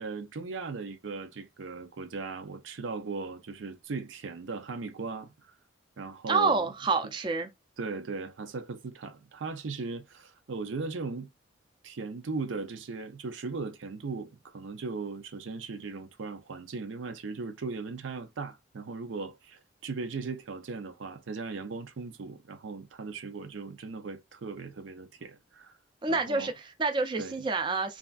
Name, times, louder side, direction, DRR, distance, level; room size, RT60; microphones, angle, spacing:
voice 1, 0.0-5.5 6.0-6.7 7.8-11.3 11.8-25.7 26.1-26.5 27.2-27.4, right 4 dB, 90° right, 0.5 m, -38 dB
voice 2, 6.3-7.5 26.0-28.0, right 4 dB, 25° right, 0.4 m, -28 dB
3.3 x 2.4 x 2.3 m
head